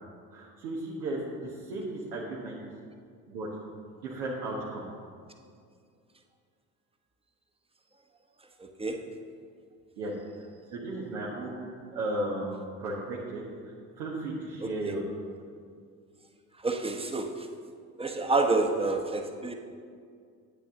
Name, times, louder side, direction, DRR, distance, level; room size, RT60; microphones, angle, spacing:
voice 1, 0.3-2.6 3.3-3.5 3.9-4.8 10.0-10.1 10.7-15.0, right 2 dB, 80° right, -6 dB, 1.4 m, -35 dB
voice 2, 8.6-9.1 14.6-14.9 16.6-17.5 18.0-19.5, right 3 dB, 10° right, 4 dB, 1.0 m, -29 dB
9.6 x 8.6 x 3.7 m, 2.2 s
hypercardioid pair, 65°, 47 cm